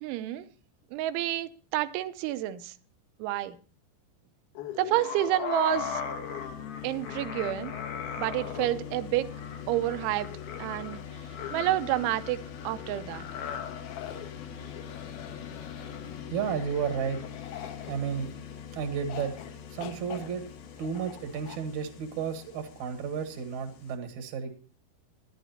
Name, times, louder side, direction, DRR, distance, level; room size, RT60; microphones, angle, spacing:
voice 1, 0.0-0.5 0.9-2.7 3.2-3.6 4.8-6.0 6.8-7.7 8.2-9.3 9.7-10.3 10.6-11.0 11.5-13.3, right 14 dB, 85° right, 11 dB, 3.2 m, -29 dB
sound 1, 4.6-18.6 19.1-19.5 19.8-21.6, left 8 dB, 65° left, 2.8 m, -40 dB
sound 2, 5.7-24.0, left 8 dB, 85° left, 4.3 m, -43 dB
voice 2, 16.3-17.2 17.6-18.3 18.7-19.3 19.7-20.4 20.8-24.7, right 7 dB, 65° right, 5 dB, 1.9 m, -33 dB
21.0 x 11.0 x 2.8 m, 0.38 s
omnidirectional pair, 5.4 m